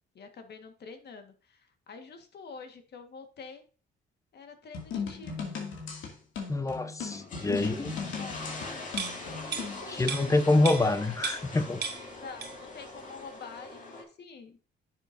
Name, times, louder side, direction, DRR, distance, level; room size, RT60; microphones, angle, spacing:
voice 1, 0.1-3.6 4.3-5.5 7.6-7.9 8.2-8.5 9.2-10.1 10.8-10.9 12.2-14.6, left 5 dB, 55° left, 1.6 m, -47 dB
sound 1, 4.7-9.8, left 5 dB, 85° left, 2.3 m, -37 dB
voice 2, 6.5-8.0 9.9-11.8, left 2 dB, 15° left, 0.8 m, -26 dB
sound 2, 7.0-14.0, left 3 dB, 40° left, 2.4 m, -42 dB
sound 3, 9.0-11.6 11.8-12.8 13.1-13.2, right 5 dB, 60° right, 1.8 m, -37 dB
9.7 x 7.0 x 2.6 m
cardioid pair, 90°, 20 cm